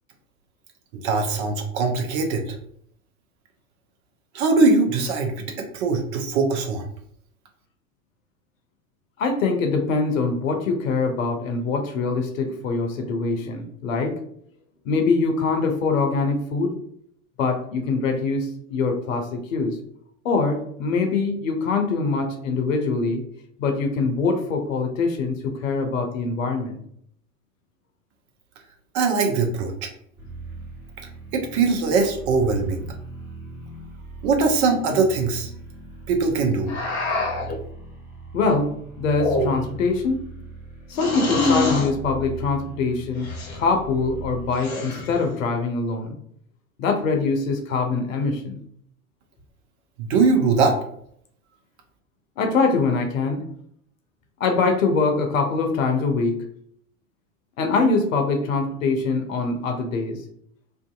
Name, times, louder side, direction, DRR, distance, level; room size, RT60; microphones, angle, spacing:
voice 1, 1.0-2.6 4.3-6.8 28.9-29.9 31.3-32.8 34.2-35.5 36.1-36.7 50.0-50.8, right 4 dB, 50° right, 3 dB, 0.7 m, -21 dB
voice 2, 9.2-14.1 14.8-16.7 17.4-19.8 20.2-23.2 23.6-26.8 38.3-40.3 40.9-46.2 46.8-48.6 52.4-53.5 54.4-56.5 57.6-60.2, left 4 dB, 65° left, 4 dB, 0.7 m, -23 dB
sound 1, 30.2-44.5, right 3 dB, 5° right, 0.8 m, -39 dB
sound 2, 36.7-37.6 39.1-39.8 40.9-41.9 43.2-43.6 44.5-45.2, left 2 dB, 40° left, 0.9 m, -25 dB
2.5 x 2.5 x 2.3 m, 0.66 s
figure-of-eight pair, 75°, 42 cm